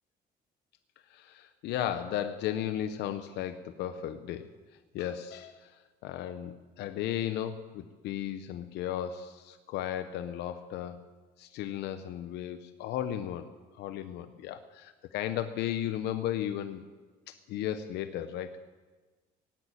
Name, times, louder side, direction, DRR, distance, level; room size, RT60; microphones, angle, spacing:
voice 1, 1.1-4.5 4.9-5.8 6.0-11.0 11.4-13.5 13.7-16.8 17.5-18.6, left 11 dB, 85° left, 9 dB, 0.8 m, -35 dB
18.0 x 8.3 x 9.0 m, 1.3 s
cardioid pair, 110°, 17 cm